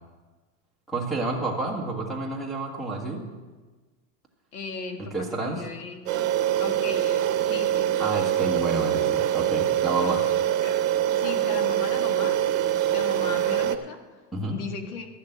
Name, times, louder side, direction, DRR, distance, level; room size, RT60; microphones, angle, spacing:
voice 1, 0.9-3.3 5.0-5.7 8.0-10.3 14.3-14.6, right 2 dB, ahead, 0 dB, 1.4 m, -29 dB
voice 2, 4.5-5.1 5.4-6.3 6.6-8.0 10.6-10.8 11.1-12.4 12.9-14.0 14.5-15.1, left 4 dB, 75° left, 5 dB, 1.9 m, -36 dB
sound 1, 6.1-13.8, right 12 dB, 60° right, 0.9 m, -24 dB
12.5 x 6.5 x 7.9 m, 1.3 s
supercardioid pair, 165°, 45 cm